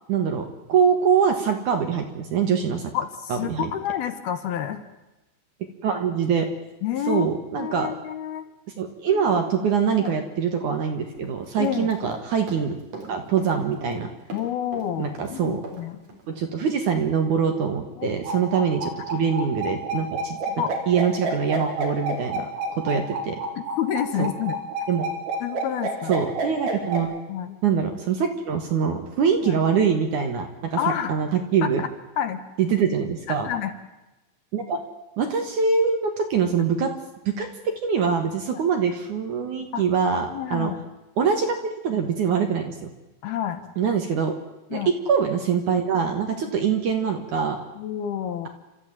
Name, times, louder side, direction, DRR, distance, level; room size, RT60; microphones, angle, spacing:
voice 1, 0.1-2.9 3.3-3.7 5.8-6.5 7.1-7.9 8.8-12.8 13.1-14.1 15.0-15.6 16.3-20.4 20.9-23.4 24.2-24.3 24.9-25.1 26.1-27.1 27.6-30.8 31.1-31.8 32.6-33.5 34.5-34.8 35.2-36.9 37.4-37.5 37.8-40.7 41.2-42.9 43.8-44.3 44.7-47.6, right 6 dB, 60° right, 5 dB, 2.4 m, -24 dB
voice 2, 2.9-4.8 6.8-7.3 7.6-8.5 10.0-10.1 11.6-11.9 14.3-16.0 18.0-18.1 20.5-20.8 23.6-24.6 25.4-26.1 27.3-27.6 29.4-29.6 30.8-31.2 31.6-31.9 32.2-32.4 33.3-33.7 38.5-38.6 39.7-39.9 40.3-40.8 43.2-43.6 44.7-44.9 47.8-48.5, left 10 dB, 70° left, 9 dB, 2.9 m, -29 dB
Run, 11.1-12.2 12.5-14.0 14.3-15.8 16.1-16.2, right 3 dB, 40° right, 4.5 m, -39 dB
sound 1, 18.2-27.0, right 2 dB, 80° right, 5.8 m, -29 dB
29.0 x 14.0 x 9.1 m, 1.0 s
omnidirectional pair, 5.0 m